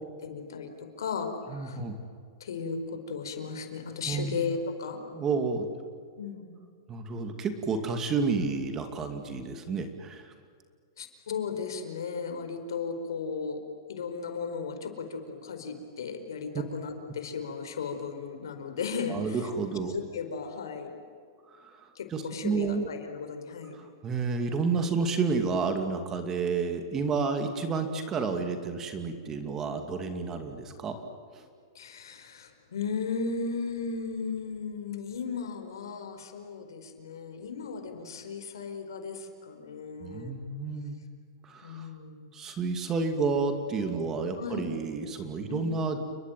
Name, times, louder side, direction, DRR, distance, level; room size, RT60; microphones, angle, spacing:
voice 1, 0.2-1.9 2.4-5.0 6.2-6.5 11.0-13.6 13.9-19.4 19.9-21.0 21.9-23.7 31.7-40.4 41.6-42.2 44.4-44.7 45.5-45.7, left 5 dB, 90° left, 7 dB, 4.7 m, -36 dB
voice 2, 1.5-2.0 4.1-4.4 5.1-5.7 6.9-10.3 19.1-19.9 21.5-22.9 23.7-31.0 31.3-31.5 40.0-41.0 41.4-41.9 42.3-46.0, right 4 dB, 20° right, 7 dB, 2.5 m, -30 dB
30.0 x 21.0 x 9.4 m, 2.1 s
hypercardioid pair, 155°, 2 cm